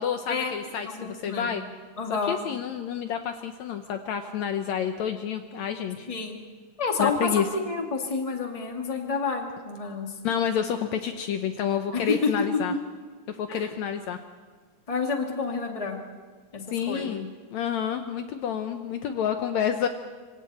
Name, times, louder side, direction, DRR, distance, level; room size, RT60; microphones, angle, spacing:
voice 1, 0.0-1.6 2.1-6.1 7.0-7.5 10.2-12.7 13.3-14.2 16.7-19.9, left 8 dB, 70° left, 7 dB, 2.0 m, -29 dB
voice 2, 0.8-1.5 2.0-2.4 6.1-6.4 6.8-10.1 11.9-12.1 13.5-13.7 14.9-16.0 16.5-16.6 16.9-17.1, left 4 dB, 15° left, 2 dB, 1.8 m, -29 dB
26.0 x 25.0 x 4.3 m, 1.5 s
omnidirectional pair, 3.7 m